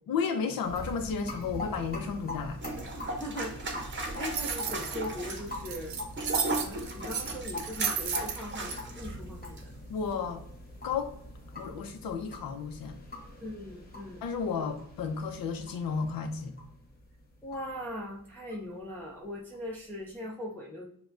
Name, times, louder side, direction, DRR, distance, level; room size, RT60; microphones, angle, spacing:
voice 1, 0.1-2.6 9.9-10.4 10.8-11.2 11.5-13.0 14.2-16.5, left 5 dB, 65° left, 5 dB, 0.7 m, -33 dB
sound 1, 0.6-19.9, left 1 dB, 25° left, 1.0 m, -43 dB
sound 2, 2.6-9.1 9.4-9.6, right 2 dB, 30° right, 0.8 m, -37 dB
voice 2, 3.0-3.5 4.2-6.0 6.6-9.7 13.4-14.2 17.4-20.9, left 1 dB, 5° left, -3 dB, 0.4 m, -40 dB
sound 3, 3.9-8.7, right 7 dB, 65° right, 0.7 m, -33 dB
6.8 x 2.3 x 2.5 m, 0.68 s
cardioid pair, 135°, 38 cm